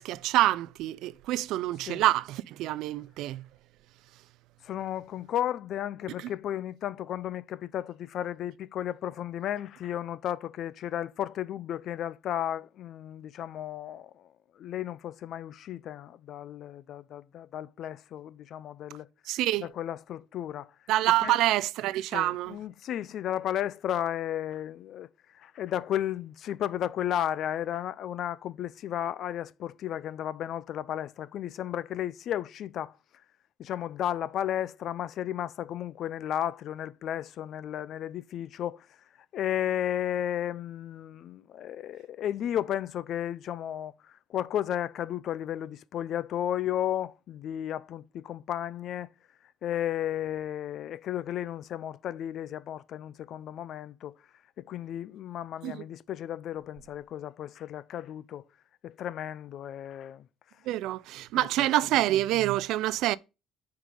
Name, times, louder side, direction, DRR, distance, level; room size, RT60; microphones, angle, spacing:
voice 1, 0.0-3.4 19.3-19.7 20.9-22.6 55.6-55.8 60.7-63.2, right 15 dB, 75° right, 0.4 m, -26 dB
voice 2, 4.6-19.1 19.6-20.7 21.2-21.4 22.1-33.0 33.6-39.0 39.3-49.1 49.6-54.2 54.6-58.4 58.8-60.3 61.3-61.7, left 11 dB, 55° left, 0.5 m, -34 dB
9.2 x 4.8 x 3.8 m
cardioid pair, 135°, 0 cm